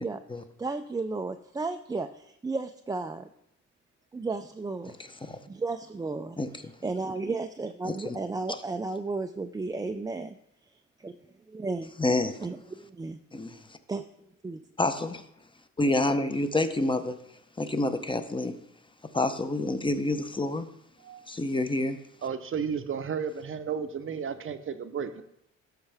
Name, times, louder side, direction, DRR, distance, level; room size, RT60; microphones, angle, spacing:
voice 1, 0.6-3.3 4.1-4.9 5.2-6.4 6.8-10.4 11.0-11.2 11.5-11.9 12.4-13.2 13.9-14.1 14.4-14.6, right 3 dB, 15° right, 7 dB, 0.3 m, -33 dB
voice 2, 7.8-8.2 8.5-8.6 12.0-12.4 13.3-13.6 14.8-15.2 15.8-17.1 17.6-18.5 19.1-20.7 21.3-22.0, left 2 dB, 15° left, 9 dB, 0.7 m, -28 dB
voice 3, 21.0-21.3 22.2-25.2, right 6 dB, 45° right, 11 dB, 0.7 m, -33 dB
13.0 x 4.6 x 3.4 m, 0.75 s
cardioid pair, 90°, 30 cm